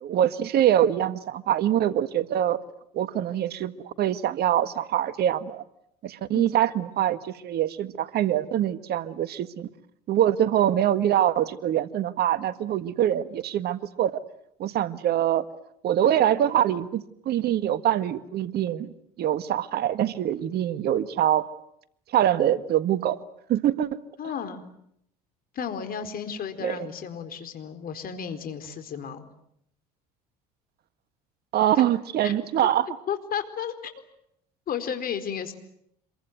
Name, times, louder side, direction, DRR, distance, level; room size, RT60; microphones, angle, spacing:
voice 1, 0.0-2.6 2.9-5.6 6.0-9.7 10.1-14.2 14.6-15.5 15.8-21.5 22.1-23.2 23.5-24.0 26.6-26.8 31.5-32.9, right 11 dB, 55° right, 13 dB, 1.7 m, -24 dB
voice 2, 24.2-24.6 25.5-29.3 32.2-32.4 33.1-33.9 34.7-35.5, left 7 dB, 50° left, 9 dB, 4.3 m, -33 dB
27.0 x 23.5 x 9.3 m, 0.73 s
hypercardioid pair, 80°, 20 cm